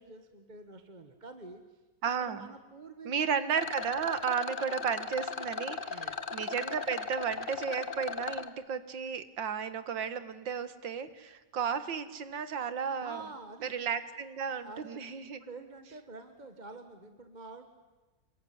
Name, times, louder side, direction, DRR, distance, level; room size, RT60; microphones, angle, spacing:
voice 1, 0.0-1.6 2.2-3.2 5.9-6.2 13.0-13.7 14.4-15.0 15.4-17.7, right 3 dB, 25° right, 7 dB, 1.5 m, -47 dB
voice 2, 2.0-2.5 3.0-13.2 13.6-15.4, right 7 dB, 85° right, 13 dB, 2.2 m, -34 dB
Rattle, 3.5-8.5, left 5 dB, 35° left, 1.0 m, -38 dB
27.5 x 22.0 x 9.5 m, 1.2 s
omnidirectional pair, 2.0 m